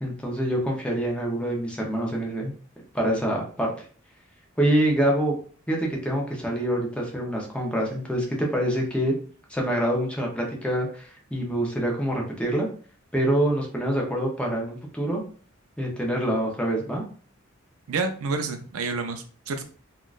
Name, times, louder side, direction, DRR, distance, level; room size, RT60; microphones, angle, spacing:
voice 1, 0.0-2.5 2.9-3.8 4.6-5.4 5.7-9.2 9.5-12.7 13.1-15.2 15.8-17.0, right 1 dB, 5° left, -1 dB, 0.8 m, -26 dB
voice 2, 17.9-19.6, right 4 dB, 90° right, 7 dB, 0.5 m, -29 dB
3.6 x 2.4 x 2.4 m, 0.42 s
head